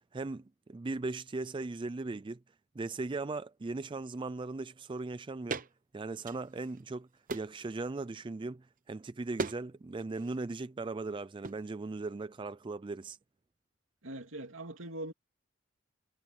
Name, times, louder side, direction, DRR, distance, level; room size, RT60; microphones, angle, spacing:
voice 1, 0.1-2.4 2.8-5.6 5.9-7.1 7.3-13.2, right 3 dB, 25° right, 0.4 m, -38 dB
sound 1, 5.5-5.7 6.1-6.8 7.3-7.6 9.4-9.6 9.9-10.4 11.4-11.6, right 3 dB, 45° right, 0.9 m, -38 dB
voice 2, 14.0-15.1, right 1 dB, 75° right, 2.9 m, -41 dB
head